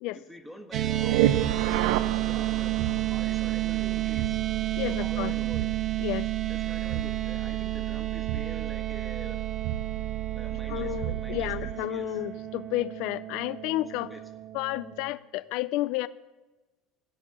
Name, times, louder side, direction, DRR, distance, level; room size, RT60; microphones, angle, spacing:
voice 1, 0.1-2.8 3.1-4.4 4.9-5.7 6.5-9.4 10.3-12.2 14.0-14.2, equal, 5° right, 4 dB, 1.6 m, -46 dB
sound 1, 0.7-15.1, right 15 dB, 45° right, 0.7 m, -32 dB
sound 2, 0.7-11.9, right 13 dB, 90° right, 0.5 m, -31 dB
voice 2, 4.8-5.3 6.0-6.3 10.7-14.1 14.5-16.1, left 18 dB, 70° left, 15 dB, 0.4 m, -31 dB
16.0 x 5.4 x 8.8 m, 1.2 s
cardioid pair, 125°, 0 cm